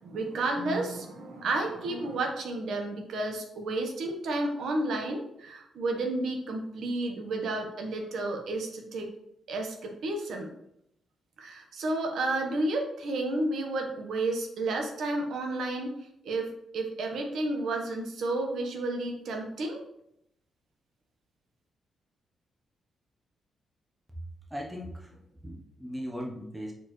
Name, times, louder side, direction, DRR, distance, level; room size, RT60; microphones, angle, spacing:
voice 1, 0.0-9.1 9.5-10.5 11.4-15.9 16.2-19.8, right 2 dB, 65° right, 2 dB, 1.1 m, -31 dB
voice 2, 24.5-26.7, equal, 5° right, -1 dB, 0.8 m, -38 dB
6.9 x 4.3 x 3.1 m, 0.77 s
wide cardioid pair, 160°, 0 cm